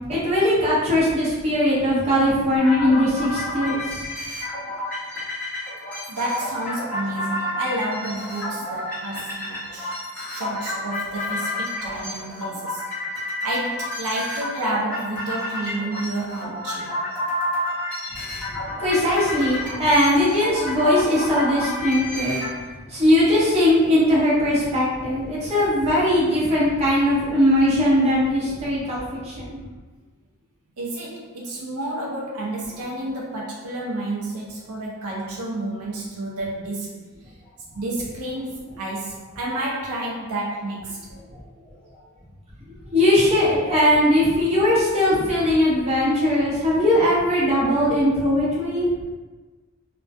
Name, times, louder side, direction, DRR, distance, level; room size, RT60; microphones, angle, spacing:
voice 1, 0.1-4.1 18.8-22.4 22.9-29.6 42.9-48.9, left 1 dB, 30° right, -9 dB, 0.9 m, -20 dB
sound 1, 2.6-22.5, left 1 dB, 10° left, 0.7 m, -30 dB
voice 2, 6.1-9.9 10.3-12.8 13.2-17.0 30.8-37.0 37.3-37.4 37.7-41.0, right 1 dB, 85° right, -3 dB, 0.4 m, -30 dB
2.2 x 2.2 x 2.5 m, 1.3 s
head